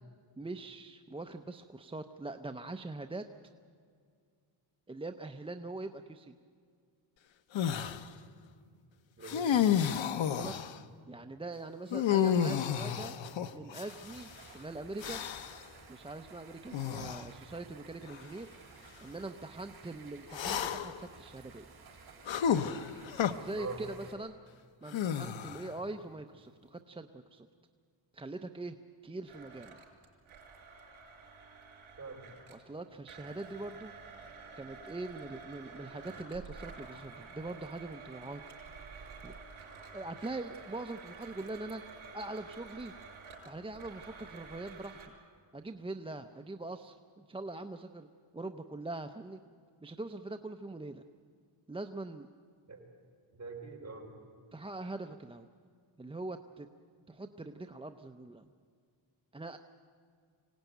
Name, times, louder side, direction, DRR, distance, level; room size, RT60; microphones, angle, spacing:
voice 1, 0.4-3.2 4.9-6.3 10.1-10.5 11.1-13.1 13.5-15.3 15.9-18.5 19.0-21.7 23.4-24.4 24.8-27.5 28.1-28.8 29.0-29.8 32.5-33.9 34.6-38.4 39.2-39.3 39.9-41.8 42.1-42.9 43.4-45.0 45.5-48.1 48.3-49.4 49.8-51.0 51.7-52.3 54.5-55.5 56.0-56.7 57.1-58.5 59.3-59.6, right 2 dB, 10° right, 7 dB, 0.5 m, -42 dB
sound 1, 7.5-8.0 9.2-10.8 11.9-14.2 15.0-15.6 16.7-17.2 18.1-18.2 20.3-21.0 22.3-23.3 24.9-25.7, left 8 dB, 70° left, 1.0 m, -31 dB
voice 2, 9.2-9.6 23.6-23.8 32.0-32.3 52.7-52.8 53.3-54.1, right 4 dB, 35° right, 0 dB, 4.4 m, -43 dB
sound 2, 13.8-24.1, right 5 dB, 50° right, 4.0 m, -55 dB
Domestic sounds home sounds, 29.3-32.7 33.1-45.1, right 4 dB, 85° right, 5.1 m, -50 dB
24.5 x 18.0 x 9.2 m, 2.1 s
wide cardioid pair, 160°, 47 cm